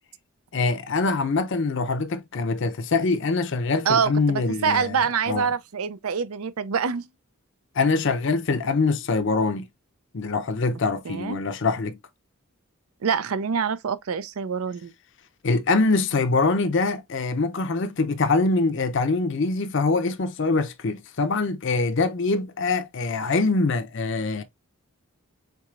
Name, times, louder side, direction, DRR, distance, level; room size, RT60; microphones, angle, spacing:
voice 1, 0.5-5.0 5.3-5.5 7.7-9.6 10.1-12.0 15.4-24.4, left 3 dB, 55° left, 0.6 m, -24 dB
voice 2, 3.9-7.1 11.1-11.4 13.0-14.9, right 6 dB, 85° right, 0.5 m, -25 dB
4.6 x 3.8 x 2.4 m
head